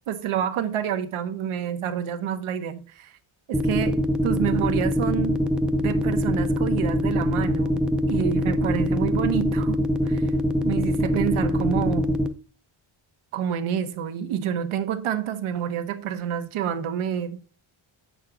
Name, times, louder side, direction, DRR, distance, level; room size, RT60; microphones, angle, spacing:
voice 1, 0.1-3.2 3.5-5.4 5.8-10.3 10.6-12.1 13.3-17.4, right 9 dB, 85° right, 1.1 m, -28 dB
sound 1, 3.5-12.3, equal, ahead, 0.4 m, -23 dB
7.8 x 6.6 x 3.7 m
wide cardioid pair, 160°, 48 cm